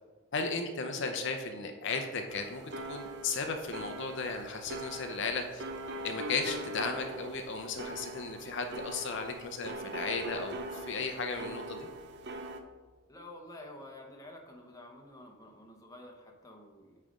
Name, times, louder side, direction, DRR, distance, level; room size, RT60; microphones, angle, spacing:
voice 1, 0.3-2.6 2.9-5.6 6.0-11.9, left 4 dB, 60° left, 5 dB, 0.6 m, -35 dB
sound 1, 2.3-12.6, right 1 dB, 55° right, 0.6 m, -42 dB
voice 2, 13.1-17.0, left 1 dB, 15° left, 1 dB, 0.9 m, -50 dB
9.0 x 3.3 x 5.0 m, 1.4 s
head